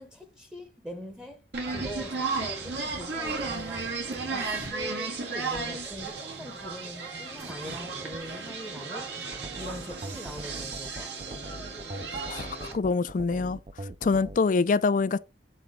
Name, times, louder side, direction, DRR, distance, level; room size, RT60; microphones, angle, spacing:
voice 1, 0.0-9.1 9.5-11.4, left 1 dB, 5° right, 0.9 m, -42 dB
sound 1, 1.5-12.7, right 4 dB, 70° right, 1.9 m, -34 dB
sound 2, 9.3-14.4, right 2 dB, 35° right, 0.5 m, -41 dB
voice 2, 12.3-13.6 14.0-15.2, left 4 dB, 45° left, 0.4 m, -25 dB
7.6 x 4.0 x 3.6 m
head